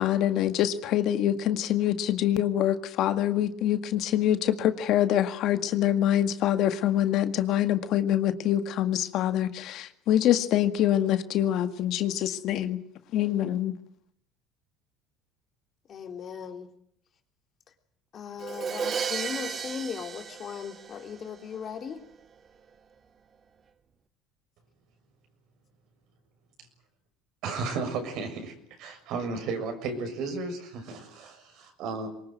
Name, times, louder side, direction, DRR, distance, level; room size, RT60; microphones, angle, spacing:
voice 1, 0.0-12.8 13.1-13.8, left 11 dB, 60° left, 1.9 m, -25 dB
voice 2, 15.9-16.7 18.1-22.0, left 7 dB, 40° left, 3.7 m, -37 dB
Crash cymbal, 18.4-21.4, right 6 dB, 35° right, 1.6 m, -34 dB
voice 3, 27.4-28.5 28.8-32.1, right 4 dB, 65° right, 6.8 m, -34 dB
23.5 x 20.5 x 9.4 m
supercardioid pair, 110°, 0 cm